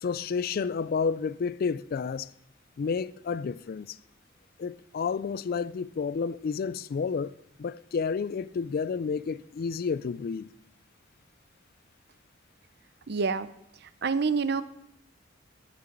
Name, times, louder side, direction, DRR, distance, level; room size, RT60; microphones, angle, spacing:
voice 1, 0.0-2.3 2.8-4.0 4.6-10.5, left 5 dB, 50° left, 0.3 m, -30 dB
voice 2, 13.1-13.5 14.0-14.6, right 5 dB, 60° right, 0.6 m, -26 dB
10.5 x 6.1 x 8.5 m
head